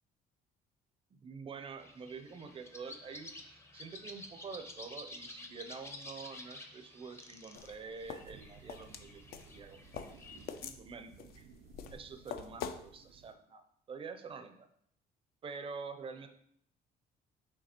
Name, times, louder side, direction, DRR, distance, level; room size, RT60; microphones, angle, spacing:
voice 1, 1.1-3.3 3.7-11.5 11.9-14.7 15.4-16.3, right 5 dB, 30° right, 8 dB, 0.5 m, -47 dB
sound 1, 1.8-10.7, left 1 dB, 15° left, 0.5 m, -51 dB
sound 2, 7.5-12.8, left 8 dB, 65° left, 0.4 m, -45 dB
sound 3, 8.2-13.3, right 5 dB, 90° right, 0.5 m, -58 dB
6.6 x 2.8 x 2.9 m, 0.67 s
cardioid pair, 110°, 17 cm